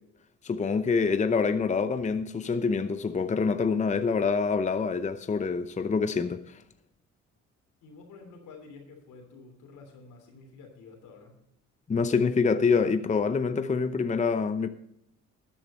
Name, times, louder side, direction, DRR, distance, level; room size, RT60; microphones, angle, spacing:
voice 1, 0.4-6.6 11.9-14.7, left 5 dB, 25° left, 0.7 m, -26 dB
voice 2, 7.8-11.4, left 4 dB, 85° left, 3.3 m, -49 dB
12.5 x 8.9 x 4.3 m
cardioid pair, 90°, 30 cm